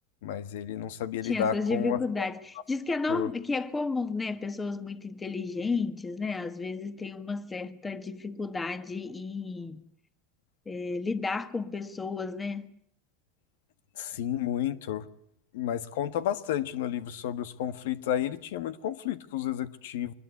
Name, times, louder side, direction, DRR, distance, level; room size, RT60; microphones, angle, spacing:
voice 1, 0.2-2.0 3.1-3.3 13.9-15.1 15.5-20.1, left 10 dB, 80° left, 1.5 m, -31 dB
voice 2, 1.2-9.8 10.7-12.8, left 4 dB, 15° left, 1.6 m, -32 dB
24.0 x 21.0 x 8.5 m
supercardioid pair, 125°, 0 cm